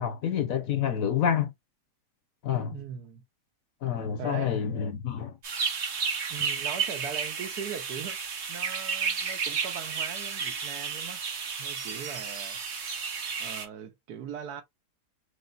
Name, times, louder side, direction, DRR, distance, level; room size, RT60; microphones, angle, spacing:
voice 1, 0.0-1.5 2.4-2.8 3.8-5.4, left 8 dB, 60° left, 1.1 m, -28 dB
voice 2, 2.7-3.2 4.2-4.5 6.3-11.2 11.6-12.6 13.4-14.6, right 8 dB, 70° right, 1.3 m, -40 dB
sound 1, 5.4-13.7, right 6 dB, 45° right, 1.2 m, -32 dB
5.3 x 2.0 x 3.9 m
omnidirectional pair, 1.8 m